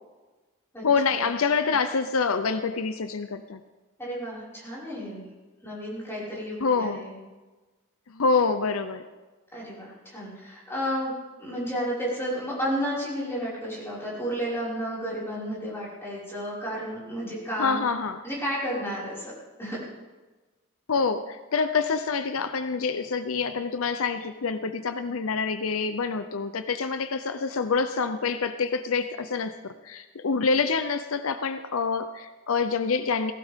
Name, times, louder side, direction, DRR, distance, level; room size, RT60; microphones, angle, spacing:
voice 1, 0.8-3.6 6.6-7.1 8.1-9.0 17.6-18.2 20.9-29.5 29.8-33.3, left 5 dB, 80° left, 10 dB, 0.7 m, -26 dB
voice 2, 4.0-5.2 5.6-7.1 9.5-11.1 11.4-17.8 18.2-19.3 19.6-19.8, equal, 10° left, -8 dB, 5.6 m, -32 dB
18.0 x 16.0 x 3.7 m, 1.2 s
head